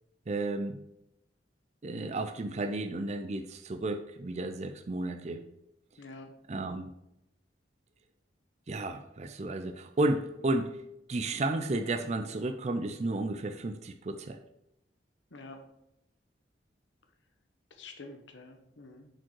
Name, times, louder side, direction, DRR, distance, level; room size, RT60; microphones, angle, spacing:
voice 1, 0.3-0.8 1.8-5.4 6.5-6.9 8.7-10.8 11.1-14.4, right 2 dB, 35° right, 6 dB, 0.4 m, -32 dB
voice 2, 6.0-6.3 15.3-15.6 17.7-19.1, left 3 dB, 85° left, 5 dB, 1.1 m, -48 dB
7.5 x 5.1 x 4.6 m, 0.85 s
head